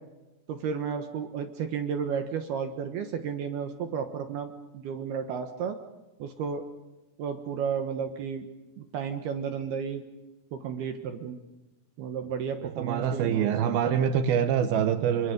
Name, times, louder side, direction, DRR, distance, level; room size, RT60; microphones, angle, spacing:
voice 1, 0.5-5.8 6.2-6.6 7.2-8.5 8.8-10.0 10.5-11.4 12.0-14.1, right 7 dB, 70° right, 6 dB, 2.7 m, -33 dB
voice 2, 12.6-15.3, right 8 dB, 90° right, 8 dB, 2.1 m, -25 dB
28.0 x 24.5 x 5.3 m, 1.0 s
omnidirectional pair, 5.8 m